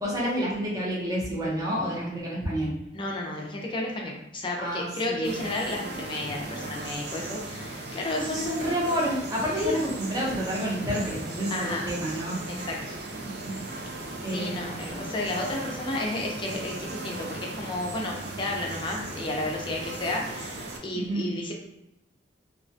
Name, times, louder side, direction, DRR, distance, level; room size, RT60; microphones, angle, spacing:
voice 1, 0.0-2.7 4.6-5.4 8.1-12.4 13.2-13.6 14.2-15.2 20.9-21.3, equal, 20° right, -5 dB, 0.7 m, -29 dB
voice 2, 2.9-8.6 9.6-9.8 11.5-11.8 12.6-12.8 14.3-21.5, left 2 dB, 30° left, 0 dB, 0.4 m, -32 dB
sound 1, 5.2-20.8, right 2 dB, 65° right, 0.4 m, -37 dB
2.3 x 2.1 x 2.5 m, 0.86 s
head